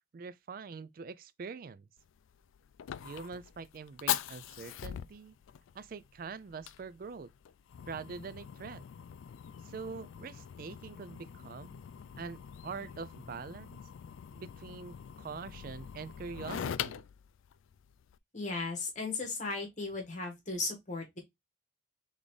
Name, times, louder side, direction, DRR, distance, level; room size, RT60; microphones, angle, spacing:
voice 1, 0.1-1.9 3.0-5.4 5.7-7.3 7.9-8.8 9.6-11.8 12.2-13.8 14.3-17.0, right 5 dB, 45° right, 0.3 m, -44 dB
Fire, 2.0-18.2, left 10 dB, 80° left, 0.3 m, -42 dB
voice 2, 18.3-21.2, left 3 dB, 35° left, 1.4 m, -36 dB
3.9 x 3.5 x 3.2 m
head